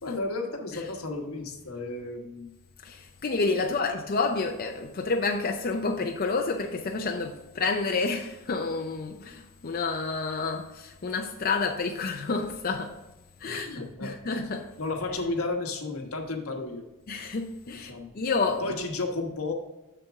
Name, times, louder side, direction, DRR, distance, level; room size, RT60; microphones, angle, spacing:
voice 1, 0.0-2.5 3.6-3.9 13.4-14.1 14.8-16.9 17.7-18.1 18.6-19.5, left 3 dB, 80° left, 1.2 m, -33 dB
voice 2, 2.8-13.0 13.4-14.8 17.1-18.8, left 4 dB, 45° left, 0.5 m, -29 dB
7.0 x 6.8 x 3.6 m
head